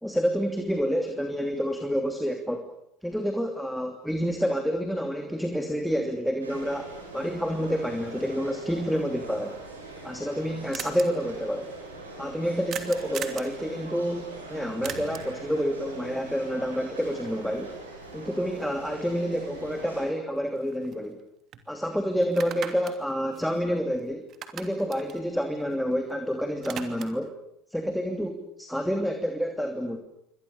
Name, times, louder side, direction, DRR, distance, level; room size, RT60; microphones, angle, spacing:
voice 1, 0.0-2.7 3.0-9.6 10.0-11.7 12.2-17.7 18.1-21.2 21.7-24.3 24.5-27.3 27.7-30.0, equal, ahead, 5 dB, 2.9 m, -28 dB
sound 1, 6.4-20.1, right 3 dB, 85° right, 7.4 m, -42 dB
sound 2, 10.7-11.0 12.7-13.5 14.8-15.4 19.6-19.7 20.1-21.2 21.5-21.6 22.2-24.0 24.3-26.1 26.4-27.3, right 9 dB, 45° right, 2.9 m, -39 dB
28.0 x 24.5 x 6.9 m, 0.76 s
hypercardioid pair, 70°, 0 cm